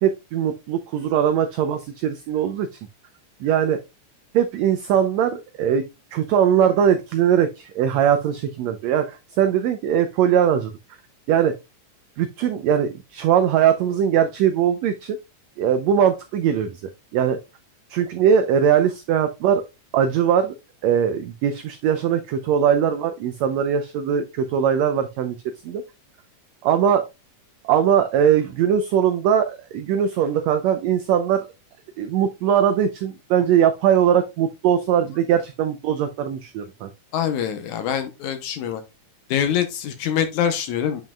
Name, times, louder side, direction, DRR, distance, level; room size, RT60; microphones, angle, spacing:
voice 1, 0.0-2.8 3.4-3.8 4.3-10.7 11.3-11.5 12.2-15.2 15.6-16.8 17.1-17.4 17.9-19.6 19.9-20.5 20.8-25.4 25.6-25.8 26.6-27.0 27.6-31.5 32.0-36.9, right 8 dB, 80° right, 1.6 m, -20 dB
voice 2, 37.1-38.8 39.3-41.0, left 9 dB, 75° left, 2.2 m, -24 dB
9.0 x 5.4 x 2.3 m
omnidirectional pair, 3.7 m